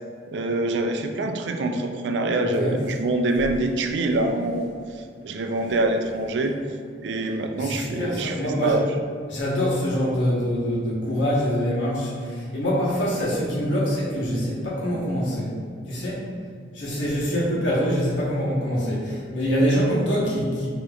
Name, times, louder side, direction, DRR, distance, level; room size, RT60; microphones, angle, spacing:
voice 1, 0.3-4.7 5.2-6.5 7.0-8.9, right 2 dB, 70° right, 5 dB, 0.4 m, -25 dB
voice 2, 2.4-2.8 3.9-4.0 7.0-7.1 7.6-8.8 9.3-15.6 15.9-16.2 16.7-20.7, equal, 80° left, -6 dB, 1.2 m, -25 dB
5.0 x 2.9 x 2.4 m, 2.2 s
head